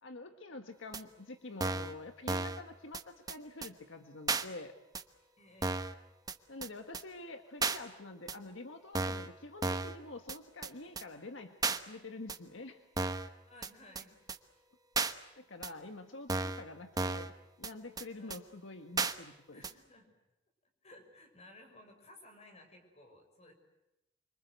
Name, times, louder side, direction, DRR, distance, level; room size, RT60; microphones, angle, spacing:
voice 1, 0.0-4.7 6.5-12.8 15.4-19.7, left 2 dB, 75° left, 6 dB, 1.6 m, -47 dB
sound 1, 0.9-1.0 1.6-1.9 2.3-2.6 2.9-3.0 3.3-3.4 3.6-3.7 4.3-4.4 4.9-5.0 5.6-5.9 6.3-6.4 6.6-6.7 6.9-7.0 7.6-7.8 8.3-8.4 8.9-9.3 9.6-10.0 10.3-10.4 10.6-10.7 11.0-11.1 11.6-11.8 12.3-12.4 13.0-13.3 13.6-13.7 14.0-14.1 14.3-14.4 15.0-15.1 15.6-15.7 16.3-16.6 17.0-17.3 17.6-17.7 18.0-18.1 18.3-18.4 19.0-19.1 19.6-19.7, right 3 dB, 20° right, 1.1 m, -33 dB
voice 2, 5.4-5.8 13.5-14.1 18.2-18.4 19.5-20.1 20.8-23.5, left 1 dB, 35° left, 5 dB, 6.4 m, -57 dB
26.5 x 25.0 x 8.1 m, 0.95 s
head